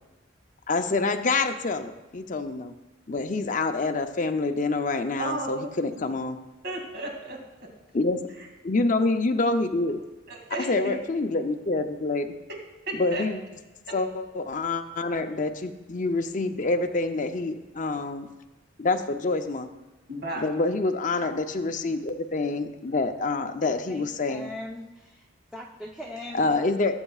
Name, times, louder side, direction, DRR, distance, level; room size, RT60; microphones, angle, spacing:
voice 1, 0.7-2.7 3.1-6.4 7.9-8.3 8.6-10.0 10.7-12.3 12.9-13.4 13.9-18.3 18.8-19.7 20.4-24.5 26.3-27.0, left 3 dB, 40° left, 7 dB, 0.6 m, -27 dB
voice 2, 5.2-5.7 6.6-7.4 10.3-11.0 12.9-13.2 20.1-20.4, right 2 dB, 60° right, 0 dB, 2.5 m, -33 dB
voice 3, 23.6-25.2 25.5-26.8, left 1 dB, 5° right, -2 dB, 0.7 m, -41 dB
17.5 x 8.0 x 2.4 m, 1.1 s
head